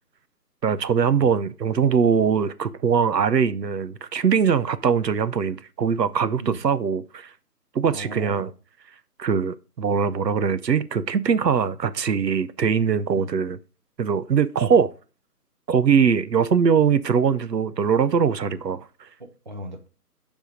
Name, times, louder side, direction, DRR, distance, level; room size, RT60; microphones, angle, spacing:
voice 1, 0.6-7.3 7.7-8.5 9.2-13.6 14.0-14.9 15.7-19.1, right 6 dB, 85° right, 0.7 m, -22 dB
voice 2, 7.9-8.5 13.1-13.3 14.7-14.8 19.2-19.9, right 1 dB, 30° right, 0.6 m, -37 dB
10.5 x 3.5 x 5.0 m
figure-of-eight pair, 150°, 48 cm